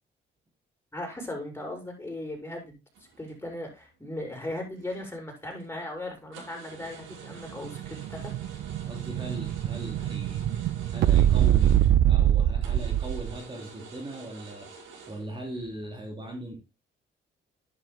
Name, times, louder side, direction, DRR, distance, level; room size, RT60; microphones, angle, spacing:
voice 1, 0.9-8.2, left 1 dB, 10° left, 7.4 m, -38 dB
sound 1, 2.9-3.7 4.2-5.1 5.5-5.7 6.3-12.2 12.6-15.9, right 4 dB, 90° right, 5.1 m, -48 dB
Explosion, 7.3-13.4, right 11 dB, 60° right, 0.4 m, -24 dB
voice 2, 8.9-16.6, right 1 dB, 25° right, 3.5 m, -40 dB
11.5 x 11.0 x 2.2 m
cardioid pair, 90°, 20 cm